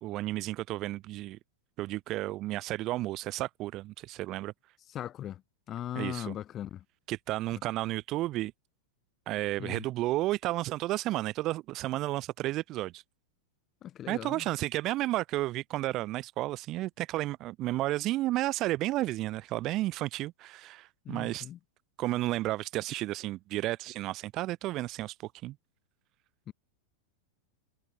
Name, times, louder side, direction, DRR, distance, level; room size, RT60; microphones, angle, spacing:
voice 1, 0.0-1.4 1.8-4.5 6.0-6.3 7.1-8.5 9.3-13.0 14.1-21.5 22.0-25.6, right 16 dB, 35° right, 2.0 m, -32 dB
voice 2, 4.9-5.4 5.7-6.8 9.6-9.8 13.8-14.5 21.0-21.6 26.5-26.6, left 11 dB, 30° left, 5.1 m, -39 dB
figure-of-eight pair, 90°, 0 cm